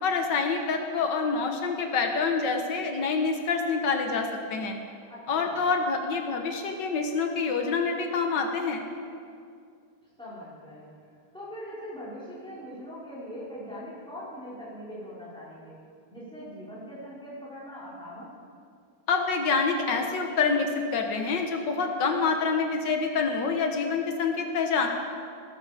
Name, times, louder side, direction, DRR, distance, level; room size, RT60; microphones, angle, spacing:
voice 1, 0.0-4.8 5.3-8.8 19.1-24.9, left 4 dB, 90° left, 3 dB, 1.9 m, -27 dB
voice 2, 5.1-5.6 10.2-10.9 11.3-15.8 16.1-18.4, equal, 5° left, -9 dB, 4.5 m, -41 dB
17.0 x 15.0 x 5.0 m, 2.3 s
omnidirectional pair, 1.8 m